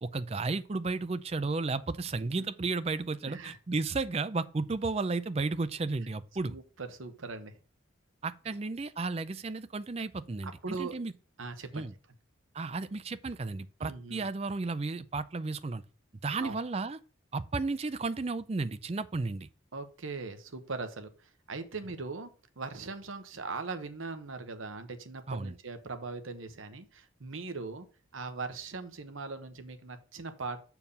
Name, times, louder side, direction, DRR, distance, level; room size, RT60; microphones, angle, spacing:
voice 1, 0.0-6.6 8.2-11.1 11.7-11.9 12.5-15.8 16.2-17.0 17.3-19.5 25.3-25.5, right 3 dB, 30° right, 0.4 m, -33 dB
voice 2, 3.2-3.6 6.5-7.5 8.4-8.5 10.4-10.9 11.4-11.9 13.8-14.3 16.4-16.6 19.7-22.3 22.6-27.9 28.1-30.6, right 4 dB, 80° right, 1.1 m, -40 dB
7.1 x 4.6 x 5.3 m
head